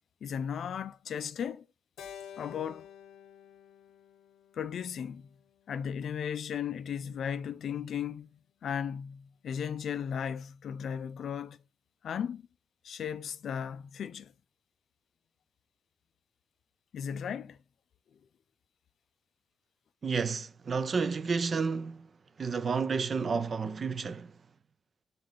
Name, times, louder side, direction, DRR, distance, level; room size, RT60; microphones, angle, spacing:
voice 1, 0.2-1.6 2.4-2.9 4.5-5.3 5.7-11.6 12.0-12.4 12.8-14.3 16.9-17.6, left 8 dB, 55° left, 0.3 m, -36 dB
Keyboard (musical), 2.0-6.4, left 9 dB, 90° left, 0.7 m, -51 dB
voice 2, 20.0-24.4, right 5 dB, 35° right, 0.4 m, -31 dB
7.2 x 3.8 x 3.7 m
wide cardioid pair, 165°, 0 cm